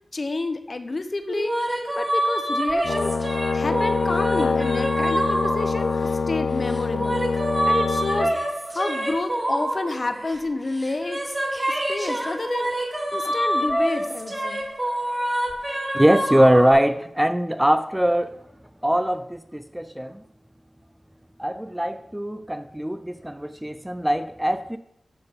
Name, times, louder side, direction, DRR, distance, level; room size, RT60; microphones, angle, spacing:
voice 1, 0.1-1.5 2.0-3.2 3.5-5.9 6.3-7.2 7.6-8.3 8.7-11.3 11.7-12.7 13.1-14.7, left 2 dB, 45° left, 0.8 m, -29 dB
sound 1, 1.3-6.2 6.7-10.5 10.8-16.7, right 1 dB, 25° right, 2.6 m, -26 dB
Brass instrument, 2.8-8.3, left 4 dB, 85° left, 0.7 m, -25 dB
voice 2, 15.9-18.4 18.8-20.2 21.4-24.8, equal, 10° right, 0.4 m, -22 dB
14.0 x 5.3 x 4.0 m
wide cardioid pair, 90°, 0 cm